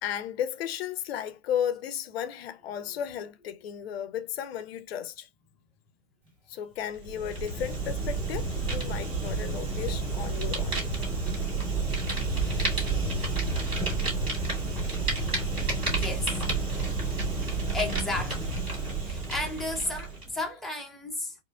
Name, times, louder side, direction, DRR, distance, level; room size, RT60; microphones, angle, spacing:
voice 1, 0.0-5.3 6.5-10.8, left 9 dB, 55° left, 0.5 m, -34 dB
Fire, 7.0-20.3, right 3 dB, 15° right, 1.9 m, -30 dB
voice 2, 15.0-15.4 15.9-16.3 17.4-18.5 19.0-21.4, left 2 dB, ahead, 0.5 m, -34 dB
4.3 x 2.0 x 2.2 m
figure-of-eight pair, 110°, 36 cm